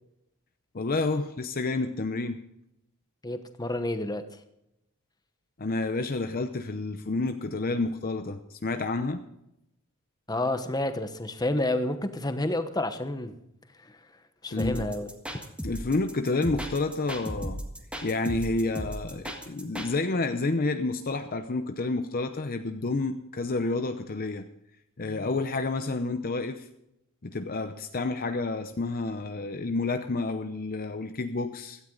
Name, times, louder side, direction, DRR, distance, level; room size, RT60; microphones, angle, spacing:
voice 1, 0.7-2.4 5.6-9.2 14.5-14.8 15.6-17.6 18.0-24.5 25.0-26.7 27.2-31.8, left 3 dB, 40° left, 7 dB, 0.7 m, -29 dB
voice 2, 3.2-4.2 10.3-13.4 13.8-13.9 14.4-15.1, left 1 dB, 20° left, 8 dB, 1.1 m, -29 dB
sound 1, 14.6-19.9, equal, 5° right, 1.6 m, -36 dB
16.5 x 13.0 x 3.9 m, 0.83 s
head